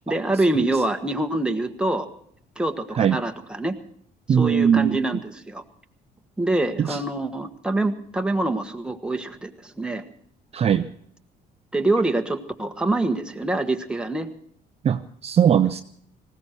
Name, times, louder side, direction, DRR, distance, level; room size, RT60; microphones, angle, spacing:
voice 1, 0.0-2.1 2.6-3.7 4.3-5.6 6.4-10.0 11.7-14.3, right 2 dB, 5° right, 4 dB, 1.4 m, -25 dB
voice 2, 4.3-5.0 10.5-10.8 14.8-15.8, right 8 dB, 40° right, 9 dB, 0.6 m, -19 dB
19.0 x 16.5 x 4.4 m, 0.63 s
cardioid pair, 110°, 17 cm